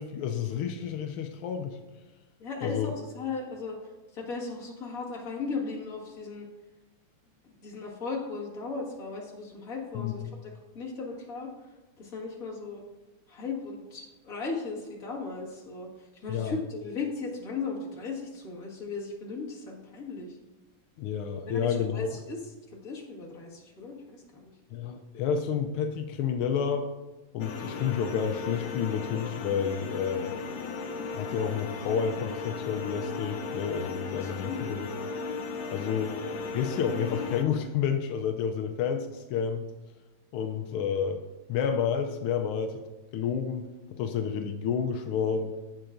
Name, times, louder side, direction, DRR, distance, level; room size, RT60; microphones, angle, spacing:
voice 1, 0.0-1.8 2.6-2.9 9.9-10.3 16.3-16.5 21.0-22.2 24.7-26.9 27.3-30.3 31.1-34.9 35.7-36.1 36.5-39.7 40.3-41.2 41.5-42.8 43.1-43.7 43.9-45.6, left 7 dB, 85° left, 6 dB, 1.5 m, -30 dB
voice 2, 2.4-3.8 4.1-6.5 7.4-11.5 12.0-12.8 13.3-20.4 21.4-22.4 22.7-24.5 34.2-34.7 35.9-36.1, left 4 dB, 45° left, -3 dB, 2.0 m, -37 dB
sound 1, 27.4-37.4, left 4 dB, 70° left, 0.8 m, -36 dB
15.5 x 5.7 x 2.6 m, 1.1 s
omnidirectional pair, 2.3 m